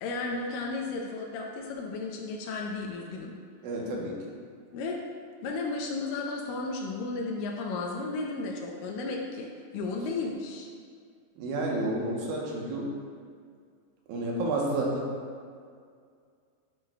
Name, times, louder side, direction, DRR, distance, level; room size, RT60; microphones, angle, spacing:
voice 1, 0.0-3.4 4.7-5.0 5.4-9.5 9.7-10.7, left 3 dB, 80° left, 0 dB, 2.1 m, -34 dB
voice 2, 3.6-4.1 11.4-12.9 14.1-15.1, right 2 dB, 85° right, -2 dB, 2.7 m, -30 dB
9.6 x 4.9 x 2.2 m, 2.1 s
omnidirectional pair, 4.1 m